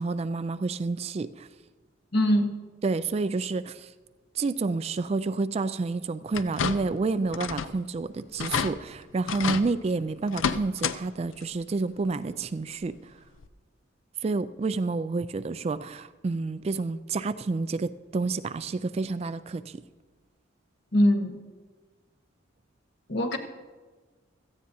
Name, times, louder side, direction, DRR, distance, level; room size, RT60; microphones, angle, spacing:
voice 1, 0.0-1.5 2.8-3.9 4.3-13.1 14.2-19.8, right 3 dB, 30° right, 13 dB, 0.3 m, -29 dB
voice 2, 2.1-2.5 20.9-21.4 23.1-23.4, equal, 60° left, 5 dB, 1.3 m, -22 dB
sound 1, 6.3-7.0 7.3-7.8 8.1-8.2 8.4-8.7 9.3-9.6 10.3-11.0 11.3-11.4 12.8-12.9 13.4-13.5, left 6 dB, 90° left, 0.5 m, -29 dB
17.0 x 14.0 x 2.8 m, 1.4 s
head